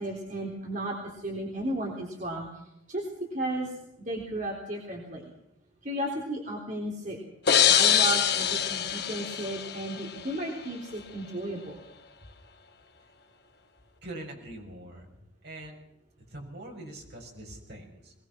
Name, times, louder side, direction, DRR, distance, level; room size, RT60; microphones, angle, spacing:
voice 1, 0.0-2.5 2.9-3.7 4.0-5.3 5.8-7.2 7.7-11.8, right 1 dB, 40° right, -1 dB, 3.6 m, -34 dB
sound 1, 7.5-10.2, left 9 dB, 60° left, 1.4 m, -24 dB
voice 2, 14.0-15.1 15.4-15.8 16.2-18.1, right 1 dB, 60° right, 1 dB, 6.5 m, -43 dB
21.5 x 20.5 x 6.2 m, 0.81 s
head